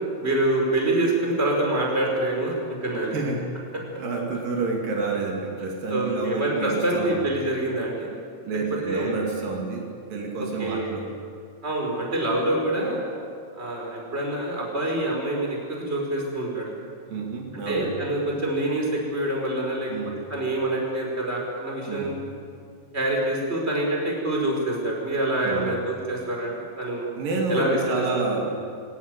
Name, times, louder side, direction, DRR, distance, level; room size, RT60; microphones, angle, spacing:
voice 1, 0.2-2.5 2.8-3.2 5.9-8.1 8.9-9.2 10.4-10.9 11.6-13.0 13.6-16.7 17.7-19.9 20.3-22.2 22.9-27.1 27.5-28.0 28.4-28.5, right 1 dB, 15° right, -1 dB, 5.4 m, -26 dB
voice 2, 3.1-3.6 3.9-7.3 8.4-11.1 17.1-18.0 19.9-20.2 21.9-22.2 25.4-25.8 27.2-28.6, right 3 dB, 75° right, 0 dB, 4.1 m, -29 dB
22.5 x 18.0 x 9.8 m, 2.3 s
omnidirectional pair, 4.0 m